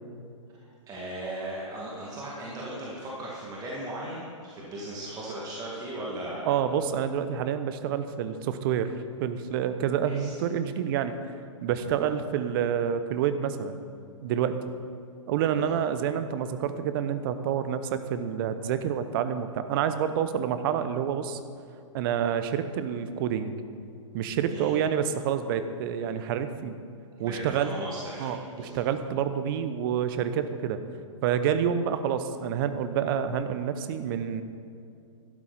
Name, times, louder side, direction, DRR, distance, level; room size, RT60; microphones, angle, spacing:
voice 1, 0.9-6.7 10.1-10.4 11.8-12.0 15.5-15.7 24.5-24.7 27.2-28.8, right 1 dB, 20° right, -5 dB, 2.1 m, -37 dB
voice 2, 6.4-8.9 9.2-11.2 11.6-13.8 14.2-14.6 15.3-21.4 21.9-23.5 24.1-26.8 27.2-27.8 28.2-30.8 31.2-34.4, right 8 dB, 45° right, 11 dB, 0.8 m, -28 dB
12.0 x 11.0 x 4.2 m, 2.5 s
figure-of-eight pair, 120°, 17 cm